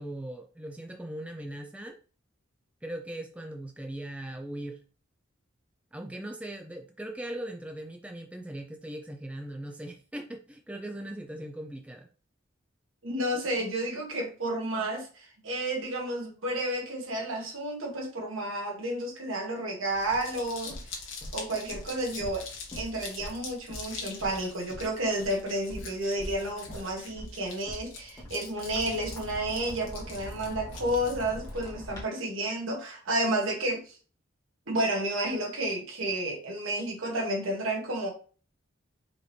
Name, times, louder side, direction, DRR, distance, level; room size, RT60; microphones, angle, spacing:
voice 1, 0.0-2.0 2.8-4.8 5.9-12.1, right 1 dB, 5° right, 3 dB, 0.4 m, -39 dB
voice 2, 13.0-20.7 21.3-22.5 22.7-34.0 34.7-38.1, right 1 dB, 85° right, 0 dB, 1.6 m, -31 dB
Crumpling crinkling, 19.9-31.7, left 5 dB, 80° left, 1.3 m, -44 dB
sound 1, 19.9-32.0, equal, 20° left, 1.6 m, -44 dB
5.0 x 3.0 x 3.2 m, 0.38 s
head